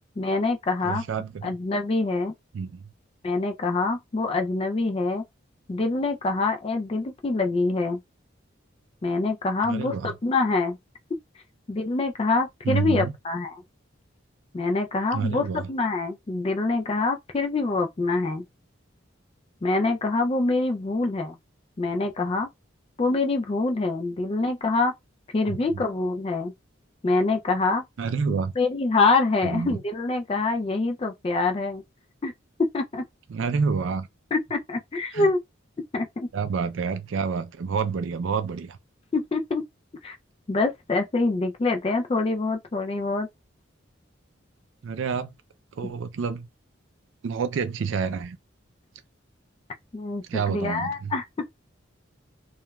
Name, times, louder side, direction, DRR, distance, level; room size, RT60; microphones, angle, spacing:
voice 1, 0.2-1.0 1.4-2.3 3.2-5.2 5.7-8.0 9.0-10.8 11.7-13.6 14.5-18.4 19.6-21.4 21.8-22.5 23.0-24.9 25.3-26.5 27.0-27.8 28.6-31.8 32.2-32.3 32.6-33.0 34.3-35.4 35.9-36.3 39.1-39.6 40.0-40.2 40.5-43.3 49.9-51.5, left 3 dB, 30° left, 0.3 m, -25 dB
voice 2, 0.8-1.5 2.5-2.9 9.6-10.1 12.7-13.1 15.1-15.7 25.5-25.8 28.0-28.5 29.4-29.8 33.3-34.1 35.1-35.3 36.3-38.8 44.8-45.3 45.8-46.5 47.2-48.4 50.3-51.1, right 5 dB, 75° right, 0.4 m, -28 dB
2.9 x 2.3 x 2.2 m
head